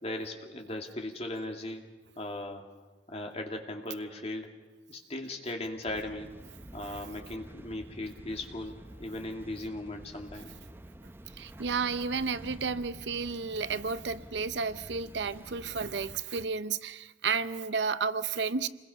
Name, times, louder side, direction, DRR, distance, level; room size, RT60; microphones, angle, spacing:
voice 1, 0.0-1.9 2.2-2.7 3.1-4.6 4.9-6.3 6.7-10.5 12.0-12.2, left 1 dB, 35° left, 2 dB, 2.4 m, -38 dB
sound 1, 5.9-16.2, right 1 dB, 10° right, 0.6 m, -49 dB
voice 2, 11.4-18.7, right 5 dB, 75° right, 14 dB, 0.7 m, -32 dB
28.0 x 21.0 x 5.5 m, 1.3 s
head